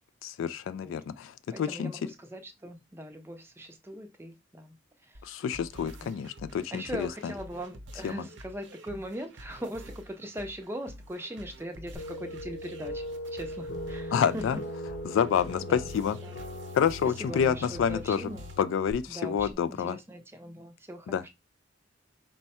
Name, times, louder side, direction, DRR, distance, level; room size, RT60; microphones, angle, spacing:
voice 1, 0.2-1.9 5.2-7.1 8.0-8.2 14.1-14.6 15.1-16.2 16.7-18.2 18.6-20.0 21.1-21.3, left 7 dB, 85° left, 0.3 m, -28 dB
voice 2, 1.5-5.3 6.0-6.1 6.7-13.0 13.3-14.6 15.6-15.8 16.1-16.4 17.0-18.5 19.1-21.3, equal, 15° right, 0.5 m, -40 dB
sound 1, 5.1-19.5, right 1 dB, 75° right, 0.7 m, -48 dB
sound 2, 11.9-18.9, left 1 dB, 60° left, 0.8 m, -40 dB
4.5 x 2.1 x 4.1 m
head